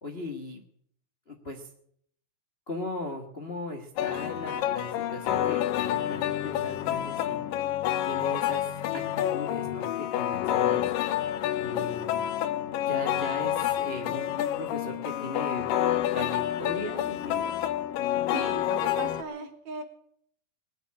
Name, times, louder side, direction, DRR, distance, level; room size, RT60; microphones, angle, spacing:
voice 1, 0.0-0.6 1.3-1.7 2.7-7.4 8.0-10.8 11.6-12.2 12.9-15.7 16.1-17.5, left 2 dB, 65° left, 3 dB, 0.5 m, -38 dB
sound 1, 4.0-19.2, left 12 dB, 85° left, 2.5 m, -28 dB
voice 2, 18.3-19.8, right 5 dB, 60° right, 5 dB, 3.0 m, -38 dB
20.5 x 7.1 x 9.5 m, 0.66 s
omnidirectional pair, 3.9 m